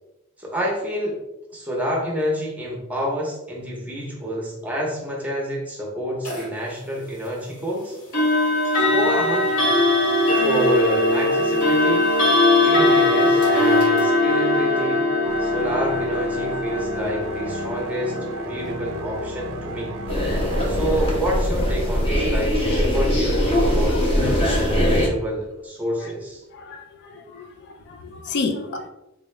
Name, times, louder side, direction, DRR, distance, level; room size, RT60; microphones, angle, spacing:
voice 1, 0.4-1.2 1.5-8.0 8.7-9.5 10.3-12.1 12.6-15.0 15.4-19.9 20.7-26.4, equal, 5° right, -3 dB, 0.7 m, -28 dB
sound 1, 6.2-6.5 8.1-21.0, left 2 dB, 85° left, 1.4 m, -21 dB
sound 2, 15.2-21.2, right 1 dB, 65° right, 0.4 m, -35 dB
sound 3, 20.1-25.1, equal, 25° left, 0.8 m, -21 dB
voice 2, 26.6-27.5 27.9-28.9, left 3 dB, 50° left, 6 dB, 0.4 m, -30 dB
3.8 x 2.3 x 3.1 m, 0.94 s
head